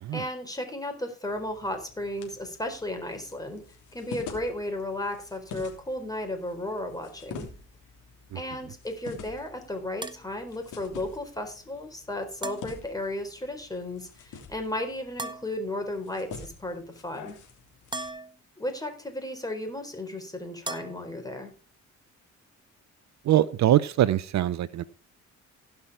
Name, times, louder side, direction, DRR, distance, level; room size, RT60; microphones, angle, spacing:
voice 1, 0.1-3.6 3.9-7.5 8.3-17.4 18.6-21.5, left 1 dB, 10° left, 4.0 m, -34 dB
sound 1, 1.3-18.1, left 5 dB, 85° left, 3.2 m, -47 dB
sound 2, 10.0-10.2 12.4-12.7 15.2-15.6 17.9-18.4 20.7-21.1, right 2 dB, 15° right, 1.3 m, -36 dB
voice 2, 23.3-24.8, right 12 dB, 65° right, 0.7 m, -23 dB
16.5 x 5.9 x 4.9 m
cardioid pair, 90°, 30 cm